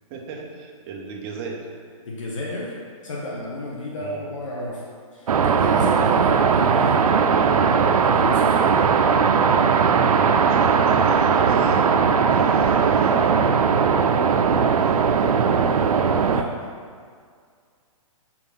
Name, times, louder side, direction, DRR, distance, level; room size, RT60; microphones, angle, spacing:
voice 1, 0.1-1.7 4.0-4.3 10.4-11.9 12.3-13.4 14.7-15.4, right 4 dB, 20° right, 0 dB, 0.8 m, -35 dB
voice 2, 2.1-2.7 3.0-4.9 5.1-7.3 8.0-8.6 16.3-16.6, left 1 dB, 60° left, -3 dB, 1.2 m, -32 dB
sound 1, 5.3-16.4, right 6 dB, 85° right, 0.5 m, -18 dB
6.1 x 4.8 x 5.5 m, 2.1 s
hypercardioid pair, 165°, 18 cm